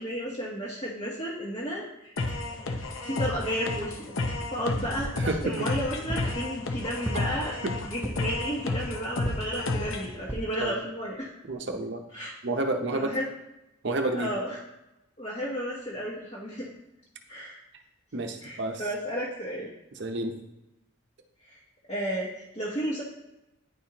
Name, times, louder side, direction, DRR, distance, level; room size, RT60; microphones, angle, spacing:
voice 1, 0.0-2.1 2.7-2.8 3.0-4.1 4.5-7.6 7.8-11.3 12.1-12.3 12.9-13.3 14.1-14.6 15.2-16.7 17.3-17.6 18.4-19.7 21.9-23.0, equal, 30° left, -7 dB, 1.1 m, -32 dB
sound 1, 2.2-10.1, left 2 dB, 75° left, 0.7 m, -32 dB
sound 2, 5.0-5.3 6.1-6.4 7.1-7.5 8.0-8.4 9.3-9.6 10.3-10.6 11.2-11.3 11.5-11.6, right 1 dB, 10° right, 0.4 m, -34 dB
voice 2, 11.5-12.0 12.4-13.1 13.8-14.3 18.1-18.8 20.0-20.3, right 2 dB, 55° right, 5 dB, 0.7 m, -29 dB
9.7 x 4.3 x 2.9 m, 0.94 s
head